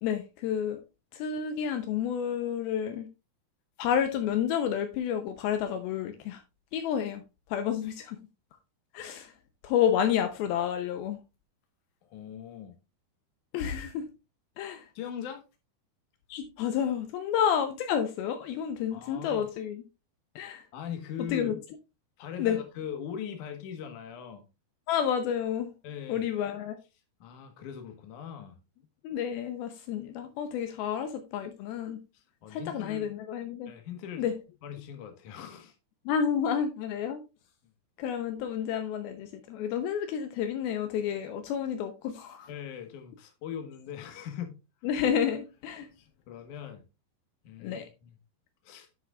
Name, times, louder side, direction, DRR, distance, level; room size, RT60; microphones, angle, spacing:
voice 1, 0.0-0.8 1.1-3.1 3.8-6.4 6.7-7.2 7.5-8.2 8.9-9.3 9.6-11.2 13.5-14.1 14.6-14.9 16.3-19.8 20.4-20.6 21.3-21.5 22.4-22.6 24.9-25.7 26.1-26.8 29.0-32.0 32.5-33.7 34.2-34.3 36.1-37.2 38.0-42.5 44.8-45.9 47.6-47.9, left 8 dB, 80° left, 2.6 m, -30 dB
voice 2, 12.0-12.7 14.9-15.4 18.9-19.4 20.7-21.5 22.2-24.4 25.8-26.3 27.2-28.6 32.1-33.1 33.7-34.2 34.6-35.7 42.5-44.6 46.0-46.8 47.4-48.2 48.6-48.9, left 8 dB, 60° left, 2.5 m, -40 dB
10.0 x 7.9 x 2.4 m
omnidirectional pair, 4.5 m